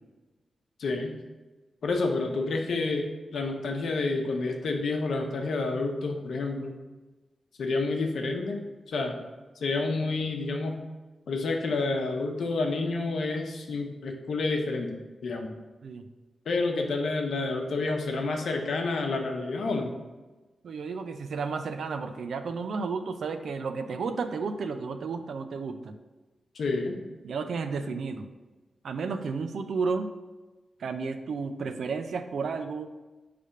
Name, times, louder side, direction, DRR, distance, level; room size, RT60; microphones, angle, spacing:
voice 1, 0.8-1.1 1.8-3.1 3.3-6.7 7.6-9.1 9.6-10.9 11.3-15.5 16.5-19.9 26.5-27.0, left 3 dB, 80° left, 2 dB, 0.8 m, -29 dB
voice 2, 20.6-25.9 27.2-28.3 28.8-30.1 30.8-32.9, right 4 dB, 80° right, 8 dB, 0.5 m, -32 dB
5.0 x 3.4 x 5.5 m, 1.2 s
cardioid pair, 90°, 0 cm